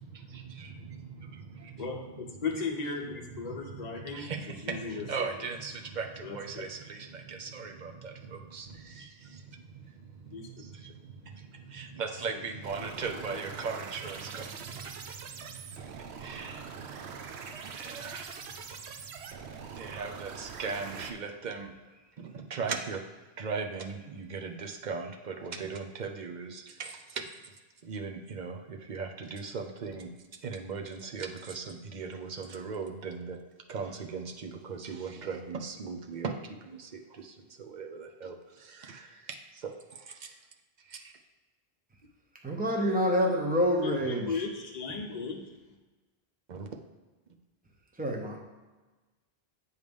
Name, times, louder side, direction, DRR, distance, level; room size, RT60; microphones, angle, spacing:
voice 1, 0.0-2.4 3.0-21.7 22.2-23.0 23.4-27.6 27.8-30.1 30.4-33.4 33.7-40.4 40.8-41.1 46.5-46.7, right 5 dB, 50° right, 3 dB, 0.7 m, -39 dB
voice 2, 1.8-5.1 6.2-6.7 10.3-10.5 12.3-12.4 13.3-13.4 44.1-45.4, left 4 dB, 45° left, 1 dB, 1.0 m, -36 dB
sound 1, 12.6-21.1, right 6 dB, 85° right, 0.9 m, -43 dB
voice 3, 42.4-44.4 48.0-48.4, equal, 10° right, 1 dB, 0.7 m, -27 dB
8.1 x 3.2 x 5.2 m, 1.2 s
omnidirectional pair, 1.1 m